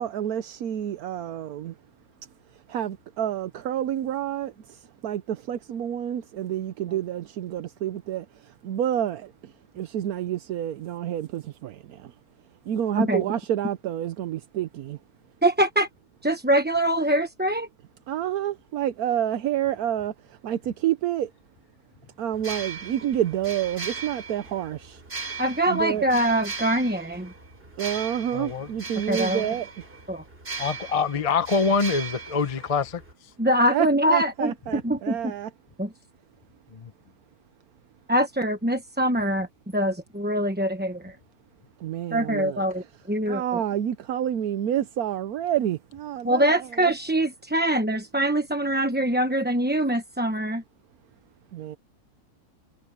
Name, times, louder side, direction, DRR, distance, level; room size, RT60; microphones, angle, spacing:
voice 1, 0.0-1.7 2.7-12.1 12.7-15.0 18.1-21.3 22.2-25.0 25.7-26.1 27.8-29.7 33.7-35.5 41.8-42.9 43.3-46.9 51.5-51.8, right 11 dB, 80° right, 1.2 m, -29 dB
voice 2, 15.4-15.9 16.2-17.7 25.4-27.3 29.1-29.4 30.1-30.2 33.4-35.3 35.8-35.9 38.1-39.5 39.7-41.1 42.1-43.4 46.2-50.6, right 1 dB, 10° right, 0.8 m, -24 dB
sound 1, 22.3-33.1, right 4 dB, 35° right, 6.4 m, -38 dB
voice 3, 28.3-28.7 30.6-33.0 36.7-36.9, left 5 dB, 30° left, 0.7 m, -25 dB
omnidirectional pair, 1.6 m